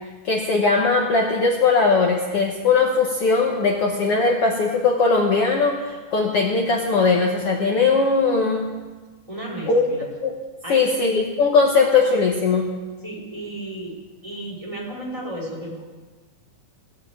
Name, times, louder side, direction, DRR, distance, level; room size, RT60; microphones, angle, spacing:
voice 1, 0.2-8.7 9.7-9.9 10.2-10.3 10.7-12.8, left 4 dB, 75° left, 0 dB, 1.3 m, -19 dB
voice 2, 9.3-10.0 10.6-11.0 13.0-13.9 14.2-15.8, right 1 dB, 10° right, -3 dB, 2.9 m, -33 dB
16.5 x 7.5 x 8.7 m, 1.3 s
omnidirectional pair, 4.3 m